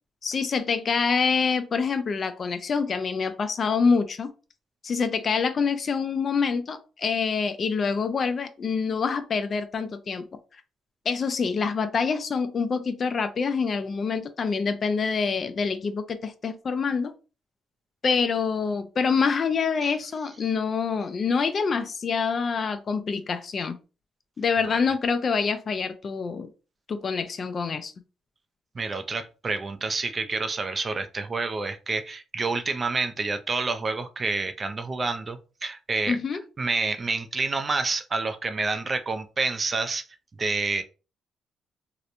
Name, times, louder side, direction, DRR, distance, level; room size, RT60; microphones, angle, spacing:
voice 1, 0.2-4.3 4.8-10.2 11.1-17.1 18.0-23.8 24.4-26.5 26.9-27.9 36.1-36.4, left 5 dB, 45° left, 0.4 m, -26 dB
voice 2, 28.8-36.2 36.6-40.0 40.4-40.8, right 3 dB, 35° right, 0.3 m, -28 dB
2.9 x 2.0 x 2.5 m
cardioid pair, 90°, 0 cm